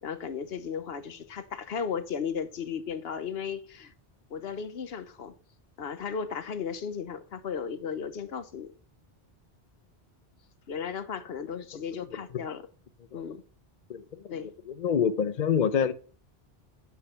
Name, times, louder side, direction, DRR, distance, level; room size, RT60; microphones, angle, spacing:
voice 1, 0.0-3.9 4.3-5.3 5.8-8.7 10.7-12.6 13.1-13.4 14.3-14.5, left 6 dB, 75° left, 1.1 m, -35 dB
voice 2, 13.9-14.3 14.7-15.9, left 7 dB, 55° left, 0.7 m, -26 dB
8.0 x 5.8 x 5.7 m
omnidirectional pair, 1.0 m